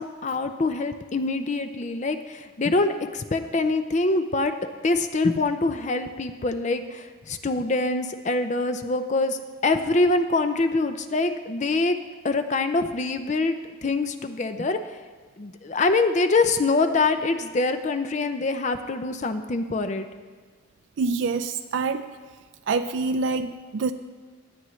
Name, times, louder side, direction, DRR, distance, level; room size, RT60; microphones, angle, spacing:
voice 1, 0.0-12.0 12.2-13.6 13.8-14.8 15.4-20.1, left 3 dB, 35° left, 8 dB, 0.5 m, -24 dB
voice 2, 21.0-22.0 22.7-23.9, right 4 dB, 65° right, 9 dB, 0.4 m, -26 dB
17.5 x 10.0 x 3.2 m, 1.5 s
head